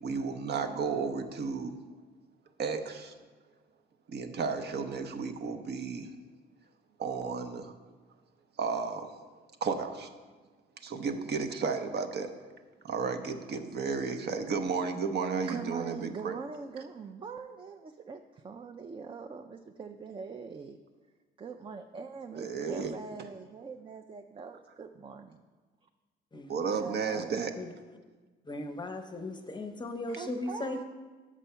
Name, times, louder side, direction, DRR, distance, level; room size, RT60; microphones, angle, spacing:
voice 1, 0.0-1.8 2.6-3.1 4.1-6.1 7.0-7.7 8.6-9.1 9.6-10.1 10.8-12.3 12.8-16.4 22.3-22.9 26.5-27.5, right 5 dB, 55° right, 7 dB, 0.7 m, -33 dB
voice 2, 15.5-20.8 21.4-25.4 26.6-27.4 30.1-30.8, right 5 dB, 25° right, 6 dB, 0.3 m, -42 dB
voice 3, 28.5-30.8, left 2 dB, 20° left, 6 dB, 0.7 m, -37 dB
6.1 x 5.6 x 5.5 m, 1.4 s
cardioid pair, 90°, 20 cm